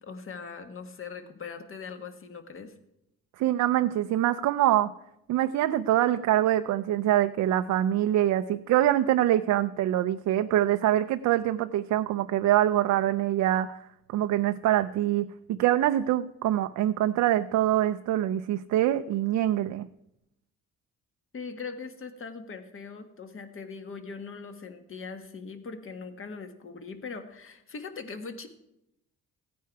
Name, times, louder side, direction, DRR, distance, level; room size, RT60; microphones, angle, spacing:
voice 1, 0.0-2.7 21.3-28.5, left 5 dB, 45° left, 7 dB, 1.5 m, -41 dB
voice 2, 3.4-4.9 5.3-13.8 14.1-19.9, right 13 dB, 70° right, 9 dB, 0.5 m, -24 dB
15.5 x 9.4 x 4.6 m, 0.83 s
cardioid pair, 90°, 30 cm